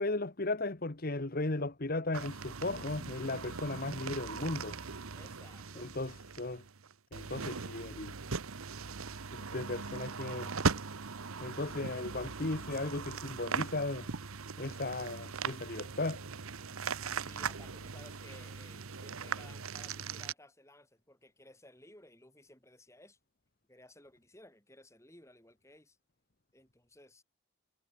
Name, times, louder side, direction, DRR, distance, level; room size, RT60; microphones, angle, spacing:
voice 1, 0.0-4.8 5.8-6.6 7.1-8.1 9.5-10.5 11.4-14.1 14.6-16.2, left 2 dB, 45° left, 1.2 m, -36 dB
sound 1, 2.1-20.3, right 5 dB, 80° right, 1.1 m, -39 dB
voice 2, 5.1-5.9 17.3-23.2 23.7-26.0 26.5-27.2, left 1 dB, 15° left, 5.6 m, -58 dB
head